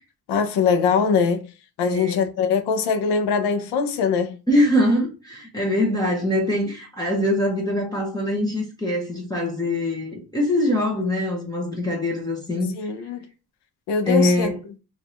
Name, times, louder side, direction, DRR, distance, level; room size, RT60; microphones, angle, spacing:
voice 1, 0.3-1.5 1.8-4.4 12.7-13.2 13.9-14.5, left 6 dB, 85° left, 0.7 m, -22 dB
voice 2, 1.8-2.2 4.5-12.7 14.1-14.5, left 1 dB, 10° left, 0.8 m, -23 dB
3.5 x 2.6 x 3.0 m
cardioid pair, 165°, 39 cm